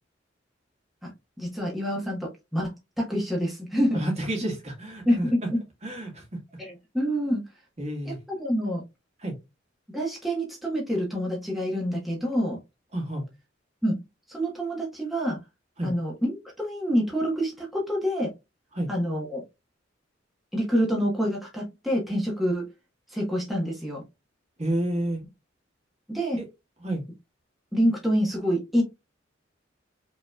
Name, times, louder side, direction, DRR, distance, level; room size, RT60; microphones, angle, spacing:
voice 1, 1.4-4.0 5.1-5.6 6.6-7.4 8.0-8.8 9.9-12.6 13.8-14.0 14.3-15.4 15.8-16.3 16.6-18.3 18.9-19.4 20.5-22.7 23.1-24.0 26.1-26.4 27.7-28.8, equal, ahead, 1.1 m, -27 dB
voice 2, 3.9-5.3 5.8-6.2 7.8-8.2 9.2-9.3 12.9-13.2 15.8-15.9 18.7-18.9 24.6-25.2 26.4-26.5 26.8-27.0, right 1 dB, 35° right, 1.5 m, -29 dB
5.1 x 3.0 x 2.3 m
head